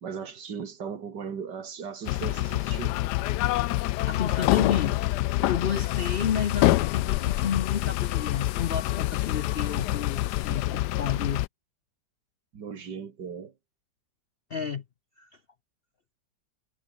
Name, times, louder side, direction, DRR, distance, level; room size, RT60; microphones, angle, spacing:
voice 1, 0.0-3.0 12.5-13.5, right 6 dB, 70° right, 2.5 m, -37 dB
sound 1, 2.1-11.5, left 16 dB, 75° left, 1.1 m, -26 dB
voice 2, 4.1-5.0 5.5-11.4 14.5-14.8 15.2-15.3, left 7 dB, 55° left, 0.6 m, -31 dB
omnidirectional pair, 1.9 m